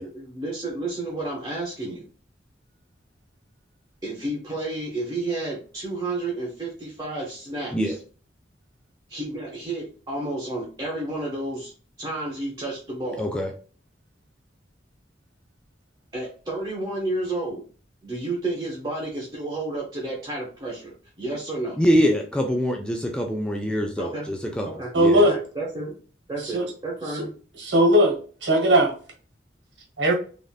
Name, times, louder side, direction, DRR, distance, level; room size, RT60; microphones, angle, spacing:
voice 1, 0.0-2.0 4.0-7.9 9.1-11.7 12.0-13.2 16.1-17.6 18.0-21.8 24.0-24.3 24.6-24.9 25.2-25.9 26.3-27.3, right 2 dB, 20° right, -4 dB, 0.8 m, -31 dB
voice 2, 13.2-13.5 21.8-25.3, equal, 5° left, 2 dB, 0.3 m, -24 dB
voice 3, 24.9-25.4 26.4-26.7 27.1-27.3 27.6-28.9 30.0-30.1, equal, 85° right, 1 dB, 1.2 m, -19 dB
3.4 x 2.5 x 2.3 m, 0.40 s
head